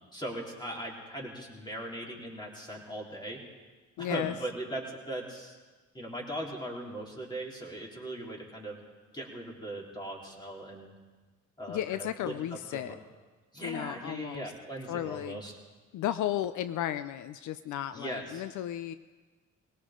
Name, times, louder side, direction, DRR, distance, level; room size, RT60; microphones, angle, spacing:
voice 1, 0.1-3.4 4.0-5.6 5.9-8.8 9.1-10.9 11.6-12.3 12.7-13.0 13.5-15.5 17.9-18.4, right 1 dB, 15° left, -2 dB, 3.9 m, -39 dB
voice 2, 4.0-4.3 11.7-13.0 13.6-14.5 14.9-15.4 15.9-18.9, left 12 dB, 75° left, 12 dB, 0.6 m, -34 dB
21.0 x 18.0 x 3.8 m, 1.3 s
cardioid pair, 90°, 30 cm